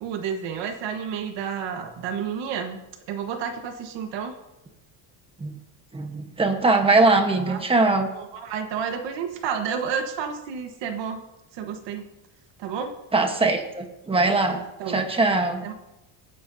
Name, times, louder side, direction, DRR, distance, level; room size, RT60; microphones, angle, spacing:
voice 1, 0.0-2.8 3.1-4.4 7.5-7.6 8.2-11.2 11.5-12.0 12.6-12.9 14.8-15.1 15.6-15.7, right 7 dB, 60° right, 5 dB, 1.4 m, -30 dB
voice 2, 5.9-8.1 13.1-14.6 14.9-15.6, right 3 dB, 10° right, 5 dB, 1.1 m, -21 dB
28.0 x 9.4 x 2.7 m, 0.96 s
cardioid pair, 170°, 48 cm